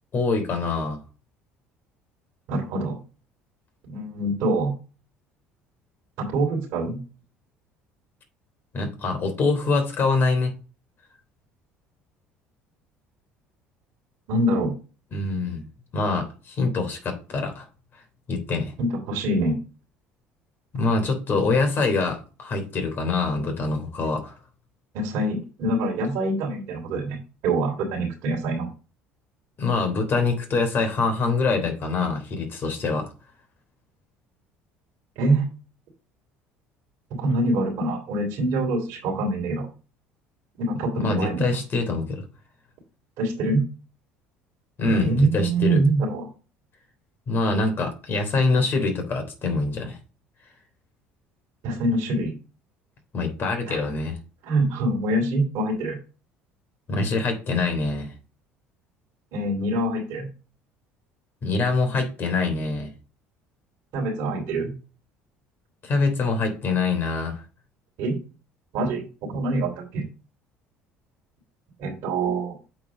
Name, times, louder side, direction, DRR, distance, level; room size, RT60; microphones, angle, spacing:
voice 1, 0.1-1.0 8.7-10.5 15.1-15.6 15.9-17.7 18.3-18.7 20.7-24.3 29.6-33.1 41.0-42.2 44.8-45.8 47.3-50.0 53.1-54.2 56.9-58.1 61.4-62.9 65.8-67.4, left 3 dB, 45° left, 5 dB, 3.4 m, -24 dB
voice 2, 2.5-3.0 3.9-4.7 6.2-7.0 14.3-14.7 18.8-19.6 24.9-27.2 27.4-28.7 35.1-35.5 37.2-39.7 40.6-41.6 43.2-43.6 44.9-46.3 51.6-52.3 53.7-53.8 54.4-56.0 59.3-60.3 63.9-64.7 68.0-68.2 68.7-70.0 71.8-72.6, right 2 dB, 70° right, -2 dB, 3.4 m, -25 dB
8.2 x 4.8 x 5.0 m, 0.34 s
supercardioid pair, 75°, 5 cm